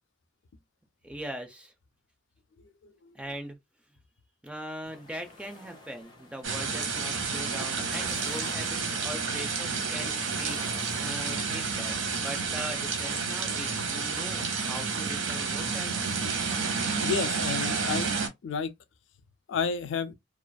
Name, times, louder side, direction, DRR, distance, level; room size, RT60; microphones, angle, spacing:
voice 1, 1.0-1.7 3.1-3.6 4.4-15.9, right 1 dB, 5° right, 0.4 m, -41 dB
sound 1, 4.8-13.3, left 2 dB, 20° left, 0.9 m, -50 dB
sound 2, 6.4-18.3, right 5 dB, 80° right, 0.8 m, -30 dB
voice 2, 17.0-18.1 18.4-18.7 19.5-20.1, left 6 dB, 65° left, 0.4 m, -30 dB
2.4 x 2.4 x 2.2 m
head